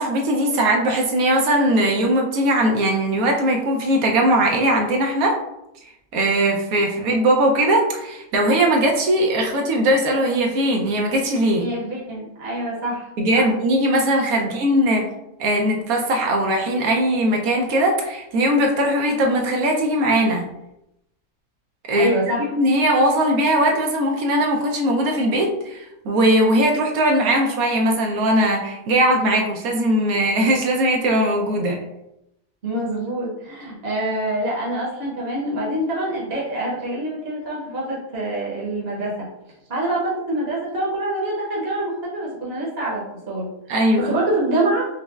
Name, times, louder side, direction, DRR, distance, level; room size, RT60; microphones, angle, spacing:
voice 1, 0.0-5.4 6.1-11.7 13.2-15.1 15.4-20.4 21.9-22.1 22.5-31.8 43.7-44.1, right 1 dB, 80° right, 1 dB, 1.1 m, -19 dB
voice 2, 11.6-13.5 14.4-14.6 21.9-22.5 32.6-39.3 39.7-43.5 44.0-44.9, right 1 dB, 50° right, -5 dB, 1.0 m, -25 dB
5.2 x 2.0 x 2.3 m, 0.84 s
omnidirectional pair, 1.5 m